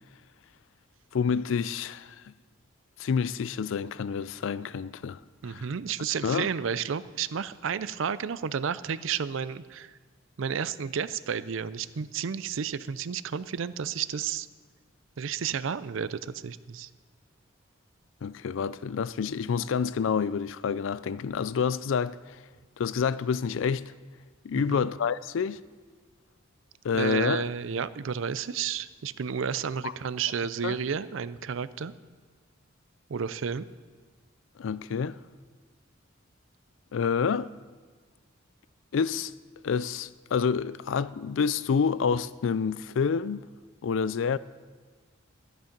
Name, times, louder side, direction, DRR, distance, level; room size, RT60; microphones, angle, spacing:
voice 1, 1.1-2.3 3.0-5.2 5.5-5.7 6.2-6.5 18.2-22.4 22.8-23.9 24.4-25.6 26.8-27.4 29.8-29.9 30.6-30.7 34.6-35.2 36.9-37.5 38.9-39.3 39.6-43.4 43.8-44.4, left 6 dB, 70° left, 0.4 m, -28 dB
voice 2, 5.4-10.0 10.4-14.5 15.2-16.9 24.5-24.9 26.9-31.9 33.1-33.7, right 7 dB, 70° right, 0.5 m, -31 dB
13.0 x 10.0 x 5.2 m
head